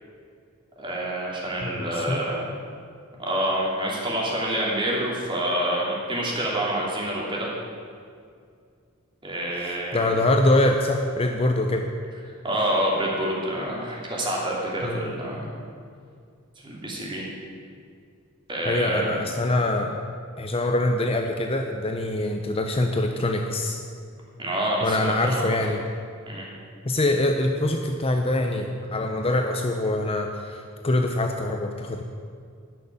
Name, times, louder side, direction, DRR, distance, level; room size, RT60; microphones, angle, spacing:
voice 1, 0.8-2.5 3.2-7.5 9.2-10.1 12.4-15.5 16.6-17.2 18.5-19.1 24.4-25.4 26.3-26.5, right 1 dB, 25° right, -4 dB, 3.0 m, -27 dB
voice 2, 1.6-2.2 9.6-11.9 14.8-15.1 18.6-20.0 20.4-23.8 24.8-25.8 26.8-32.0, left 1 dB, 25° left, 4 dB, 0.7 m, -24 dB
12.5 x 6.5 x 9.8 m, 2.2 s
head